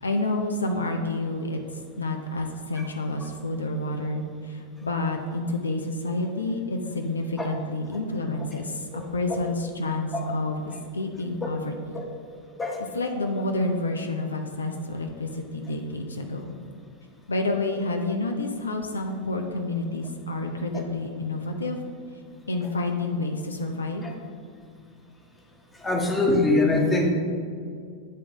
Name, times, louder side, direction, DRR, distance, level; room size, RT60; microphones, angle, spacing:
voice 1, 0.0-12.0 12.9-16.5 17.3-21.8 22.5-24.1, left 2 dB, 75° left, 4 dB, 0.5 m, -29 dB
voice 2, 25.8-27.1, left 2 dB, 15° left, 1 dB, 1.1 m, -23 dB
9.6 x 3.7 x 4.9 m, 2.3 s
figure-of-eight pair, 90°, 0 cm